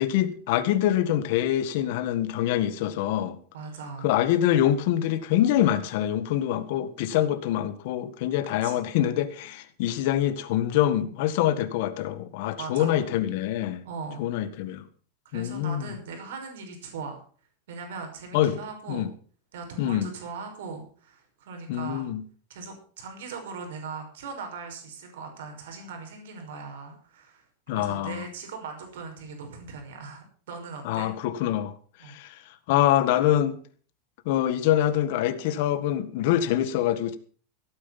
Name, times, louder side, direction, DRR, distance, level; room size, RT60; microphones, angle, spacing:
voice 1, 0.0-3.4 4.0-13.8 14.2-14.9 15.3-15.9 18.3-18.6 18.9-19.1 19.8-20.1 21.7-22.2 27.7-28.3 30.8-31.7 32.0-32.4 32.7-33.6 34.2-37.2, left 12 dB, 60° left, 1.7 m, -25 dB
voice 2, 3.5-4.1 8.6-8.9 12.6-13.0 13.8-14.2 15.2-17.2 17.7-19.1 19.5-22.1 22.5-27.4 27.7-31.1 32.0-32.2, right 4 dB, 85° right, 5.6 m, -39 dB
16.5 x 9.3 x 5.9 m
supercardioid pair, 165°, 0 cm